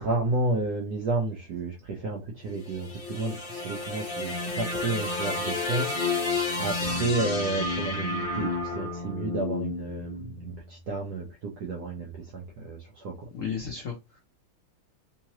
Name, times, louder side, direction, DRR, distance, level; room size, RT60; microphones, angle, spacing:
voice 1, 0.0-13.3, right 3 dB, 65° right, 1.1 m, -31 dB
sound 1, 2.5-10.8, left 3 dB, 35° left, 1.0 m, -31 dB
voice 2, 13.3-14.2, left 7 dB, 75° left, 0.7 m, -34 dB
3.7 x 2.9 x 2.9 m
omnidirectional pair, 2.2 m